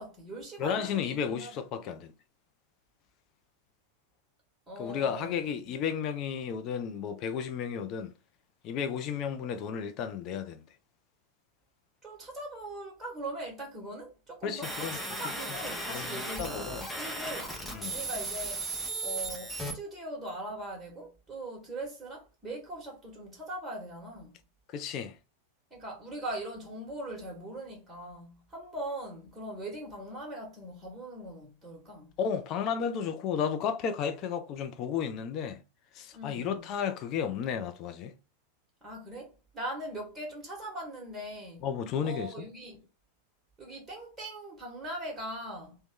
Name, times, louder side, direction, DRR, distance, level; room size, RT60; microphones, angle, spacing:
voice 1, 0.0-1.6 4.7-5.7 12.0-17.6 17.9-18.7 19.0-24.4 25.7-32.1 36.1-36.7 38.8-41.7 42.0-42.9 43.6-45.8, right 1 dB, 10° right, 1.2 m, -41 dB
voice 2, 0.6-2.1 4.8-8.1 8.6-10.6 14.4-15.0 15.9-16.9 17.7-18.0 24.7-25.2 32.2-35.6 35.9-38.1 41.6-42.3, left 7 dB, 35° left, 0.4 m, -33 dB
sound 1, 14.6-19.7, right 2 dB, 5° left, 0.7 m, -36 dB
3.0 x 2.2 x 3.6 m
figure-of-eight pair, 90°, 0 cm